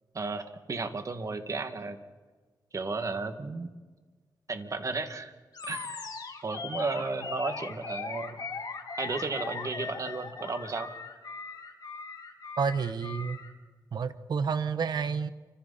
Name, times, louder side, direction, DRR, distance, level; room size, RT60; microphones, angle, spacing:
voice 1, 0.1-2.0 2.7-3.7 4.5-5.3 5.6-6.0 6.4-8.4 9.0-10.9, right 3 dB, 45° right, 7 dB, 2.3 m, -34 dB
Animal, 5.5-13.5, left 4 dB, 60° left, 3.3 m, -39 dB
voice 2, 12.6-13.4 13.9-15.3, right 6 dB, 65° right, 11 dB, 1.3 m, -29 dB
29.0 x 26.0 x 4.3 m, 1.4 s
cardioid pair, 80°, 8 cm